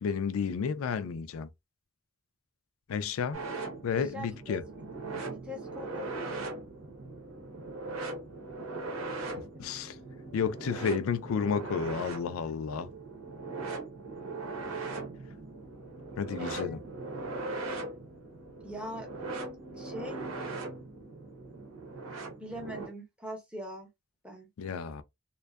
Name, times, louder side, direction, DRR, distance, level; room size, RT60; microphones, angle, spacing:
voice 1, 0.0-1.5 2.9-3.5 3.8-4.6 9.6-10.0 10.3-12.9 16.2-16.8 24.6-25.0, left 6 dB, 75° left, 0.4 m, -31 dB
sound 1, 3.3-22.9, right 3 dB, 75° right, 0.8 m, -40 dB
voice 2, 3.9-4.8 5.2-6.5 9.2-9.4 16.4-16.8 18.6-19.1 19.7-20.3 22.4-23.9 24.2-24.5, equal, 5° right, 0.7 m, -42 dB
2.5 x 2.2 x 2.3 m
head